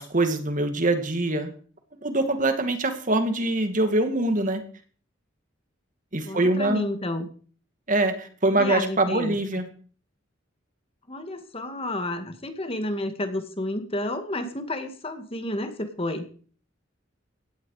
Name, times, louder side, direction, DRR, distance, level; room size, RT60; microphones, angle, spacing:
voice 1, 0.0-1.5 2.0-4.6 6.1-6.9 7.9-9.7, right 2 dB, 40° right, 7 dB, 2.3 m, -24 dB
voice 2, 6.2-7.3 8.5-9.4 11.1-16.3, left 1 dB, 30° left, 8 dB, 2.0 m, -31 dB
17.0 x 12.0 x 4.9 m, 0.43 s
head